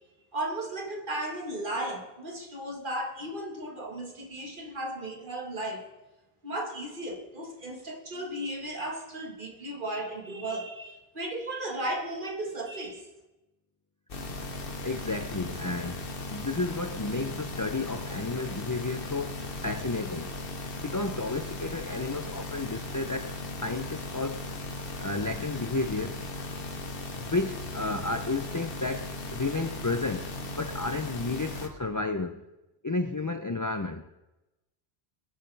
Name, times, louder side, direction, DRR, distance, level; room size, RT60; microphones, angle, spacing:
voice 1, 0.3-5.9 6.4-13.1, right 1 dB, 50° right, 1.8 m, -35 dB
sound 1, 14.1-31.7, left 2 dB, 60° left, 1.3 m, -37 dB
voice 2, 14.8-16.0 16.3-20.3 20.8-24.5 25.0-26.3 27.2-30.3 30.6-32.4 32.8-34.1, left 3 dB, 30° left, 0.4 m, -32 dB
22.5 x 10.0 x 3.4 m
omnidirectional pair, 1.1 m